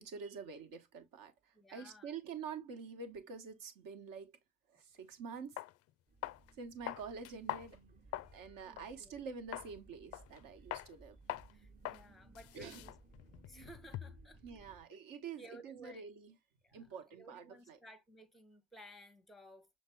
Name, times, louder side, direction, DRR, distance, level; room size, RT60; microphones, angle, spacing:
voice 1, 0.0-4.4 4.7-5.6 6.6-7.8 8.3-11.2 12.5-12.8 14.4-16.3 16.7-17.8, right 5 dB, 55° right, 1.3 m, -47 dB
voice 2, 1.5-2.1 6.8-6.9 8.6-9.2 11.5-12.9 13.3-14.4 15.4-16.1 16.6-19.7, right 1 dB, ahead, 0.8 m, -57 dB
sound 1, 5.0-5.1 5.6-5.7 6.2-6.5 6.9-8.4 8.8-8.9 9.5-9.7 10.1-10.4 10.7-10.9 11.3-11.5 11.8-12.0 12.3-14.3, left 15 dB, 40° left, 0.4 m, -43 dB
sound 2, 6.1-14.8, right 2 dB, 20° right, 1.2 m, -61 dB
6.3 x 2.2 x 3.4 m
hypercardioid pair, 65°, 40 cm